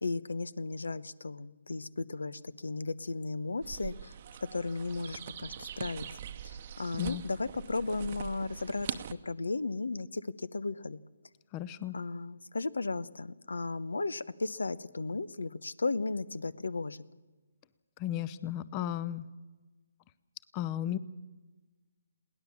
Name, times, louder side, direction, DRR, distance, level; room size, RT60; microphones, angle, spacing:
voice 1, 0.0-4.1 4.5-6.0 6.4-11.0 11.9-17.0, left 3 dB, 90° left, 19 dB, 1.0 m, -35 dB
sound 1, 3.6-9.1, right 9 dB, 35° right, 0.9 m, -42 dB
voice 2, 11.5-12.0 18.0-19.2 20.5-21.0, left 11 dB, 20° left, 17 dB, 0.6 m, -34 dB
21.5 x 18.0 x 7.2 m, 1.2 s
hypercardioid pair, 165°, 0 cm